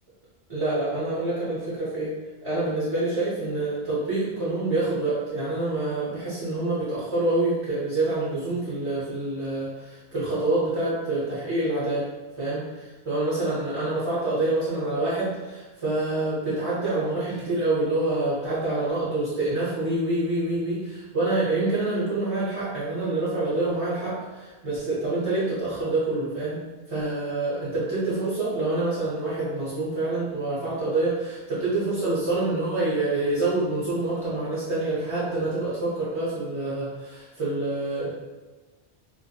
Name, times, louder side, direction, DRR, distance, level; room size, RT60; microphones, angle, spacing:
voice 1, 0.5-2.1 2.4-12.1 12.4-12.7 13.0-38.1, right 2 dB, 35° right, -12 dB, 0.7 m, -26 dB
2.3 x 2.1 x 2.8 m, 1.2 s
omnidirectional pair, 1.2 m